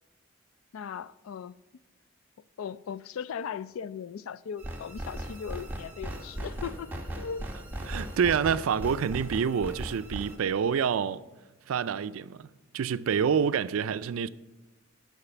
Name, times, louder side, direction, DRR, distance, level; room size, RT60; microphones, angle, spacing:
voice 1, 0.7-1.5 2.6-7.5 7.9-8.0, left 7 dB, 85° left, 0.4 m, -38 dB
sound 1, 4.6-10.4, right 1 dB, 10° right, 1.0 m, -38 dB
voice 2, 7.9-11.2 11.7-12.5 12.7-14.3, right 7 dB, 85° right, 0.4 m, -27 dB
9.9 x 6.5 x 7.0 m
head